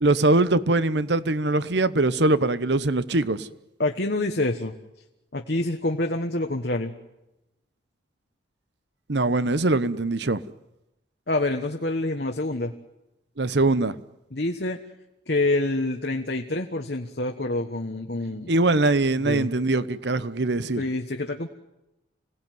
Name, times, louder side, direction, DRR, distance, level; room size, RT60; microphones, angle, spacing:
voice 1, 0.0-3.5 9.1-10.4 13.4-13.9 18.5-20.8, right 2 dB, 70° right, 15 dB, 1.0 m, -22 dB
voice 2, 3.8-4.7 5.3-6.9 11.3-12.7 14.3-14.8 15.3-18.5 19.2-19.5 20.8-21.5, left 2 dB, 60° left, 3 dB, 1.4 m, -27 dB
27.0 x 18.0 x 9.4 m, 0.94 s
head